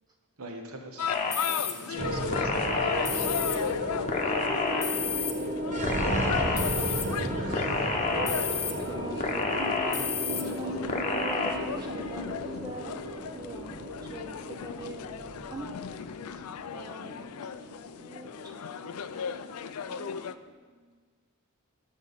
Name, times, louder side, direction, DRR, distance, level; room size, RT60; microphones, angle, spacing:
voice 1, 0.4-1.3 1.6-3.3 4.4-5.0 6.2-8.1, right 1 dB, 70° right, 3 dB, 1.3 m, -45 dB
sound 1, 1.0-20.3, left 7 dB, 80° left, 0.4 m, -37 dB
sound 2, 1.1-1.7 2.3-3.6 4.1-5.3 5.8-7.0 7.5-8.7 9.2-10.4 10.9-11.5, left 4 dB, 30° left, 0.9 m, -30 dB
sound 3, 2.0-20.3, right 1 dB, 35° right, 1.0 m, -34 dB
voice 2, 8.1-9.9 10.6-12.4 12.6-13.0 13.3-15.2 15.5-15.8 16.3-16.4 16.7-17.3 17.6-20.2 20.6-21.0, right 2 dB, 20° right, 2 dB, 0.6 m, -43 dB
12.5 x 6.3 x 4.1 m, 1.5 s
head